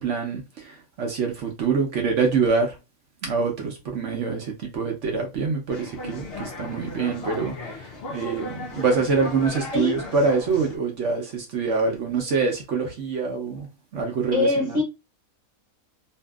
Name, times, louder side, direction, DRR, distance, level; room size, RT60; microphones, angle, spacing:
voice 1, 0.0-2.8 3.2-13.7 13.9-14.8, right 4 dB, 60° right, 0.9 m, -25 dB
sound 1, 5.7-10.8, left 2 dB, 70° left, 0.5 m, -36 dB
voice 2, 14.3-14.8, left 3 dB, 35° left, 0.7 m, -22 dB
2.7 x 2.6 x 2.3 m
omnidirectional pair, 1.5 m